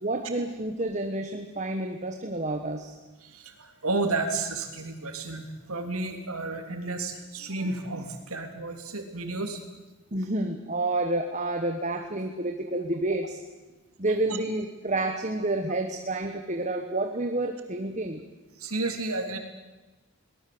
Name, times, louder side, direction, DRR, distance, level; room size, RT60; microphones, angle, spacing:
voice 1, 0.0-3.0 10.1-13.4 14.0-18.2, right 2 dB, 35° right, 5 dB, 1.4 m, -29 dB
voice 2, 3.2-9.6 14.1-14.2 18.6-19.4, right 3 dB, 85° right, 5 dB, 3.3 m, -32 dB
22.5 x 19.5 x 7.9 m, 1.2 s
head